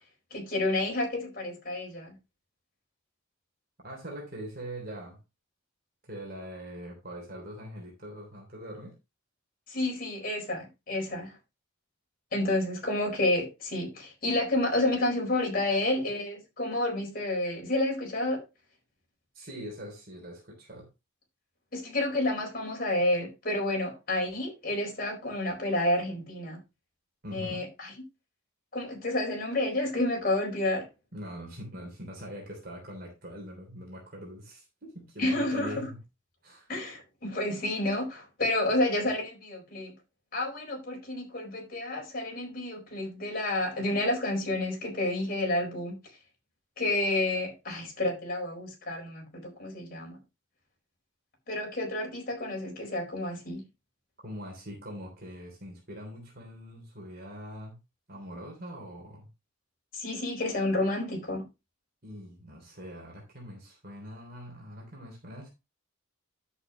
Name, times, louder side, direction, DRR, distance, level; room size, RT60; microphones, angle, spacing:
voice 1, 0.3-2.2 9.7-11.4 12.3-18.4 21.7-26.6 27.3-27.9 28.7-30.8 35.2-35.9 36.7-39.9 40.3-46.0 46.8-50.2 51.5-53.6 59.9-61.4, left 1 dB, 45° left, 4.5 m, -30 dB
voice 2, 3.8-5.2 6.0-8.9 19.3-20.9 27.2-27.6 31.1-36.0 36.4-36.7 54.2-57.8 58.1-59.3 62.0-65.5, equal, 45° right, 3.3 m, -42 dB
10.5 x 8.0 x 2.9 m
head